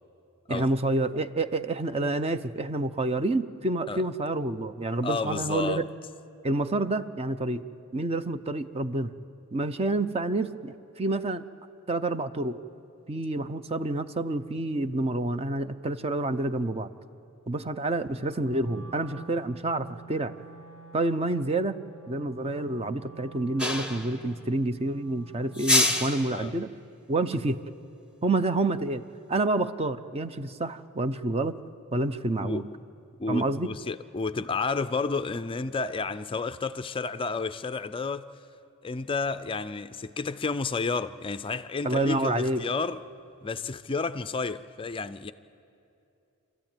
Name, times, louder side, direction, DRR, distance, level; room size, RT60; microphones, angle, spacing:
voice 1, 0.5-5.8 6.4-7.6 7.9-9.1 9.5-11.4 11.9-12.6 13.1-16.9 17.5-20.3 20.9-21.8 22.1-26.7 27.1-27.6 28.2-29.0 29.3-31.6 31.9-32.7 33.3-33.7 41.8-42.6, right 2 dB, 25° right, 0.6 m, -28 dB
voice 2, 5.0-5.9 26.3-26.5 32.4-32.6 33.2-38.3 38.8-43.0 43.4-45.3, left 4 dB, 25° left, 0.4 m, -31 dB
Wind instrument woodwind instrument, 18.1-26.1, right 5 dB, 85° right, 6.9 m, -49 dB
sound 1, 23.6-24.2 25.5-26.4, left 1 dB, 5° right, 1.4 m, -25 dB
28.5 x 13.5 x 9.0 m
head